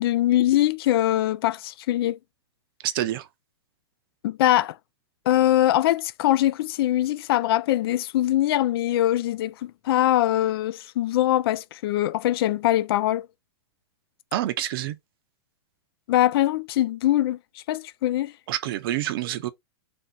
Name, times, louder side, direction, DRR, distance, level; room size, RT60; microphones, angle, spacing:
voice 1, 0.0-2.2 4.2-4.8 5.3-13.3 16.1-18.3, left 13 dB, 55° left, 0.4 m, -22 dB
voice 2, 2.8-3.3 14.3-15.0 18.5-19.5, right 13 dB, 55° right, 0.6 m, -27 dB
3.4 x 2.7 x 3.8 m
hypercardioid pair, 140°, 15 cm